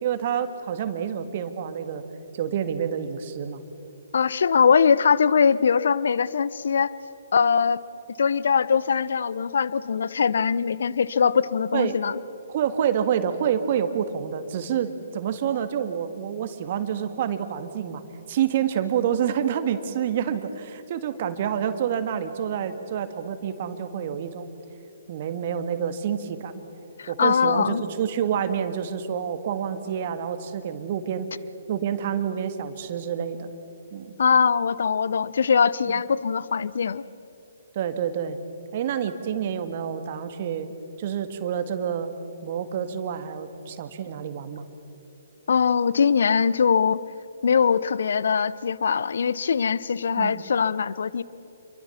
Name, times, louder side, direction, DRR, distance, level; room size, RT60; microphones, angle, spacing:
voice 1, 0.0-2.0 2.3-3.6 11.7-12.0 12.5-18.0 18.3-24.5 25.1-26.6 27.1-31.3 31.7-33.5 33.9-34.1 37.8-38.4 38.7-42.1 42.4-44.7 50.1-50.4, right 8 dB, 45° right, 9 dB, 1.7 m, -28 dB
voice 2, 4.1-6.9 7.3-7.8 8.2-12.2 27.0-27.8 34.2-37.0 45.5-47.0 47.4-51.2, left 6 dB, 65° left, 18 dB, 0.7 m, -22 dB
29.0 x 23.5 x 7.2 m, 2.9 s
figure-of-eight pair, 130°, 0 cm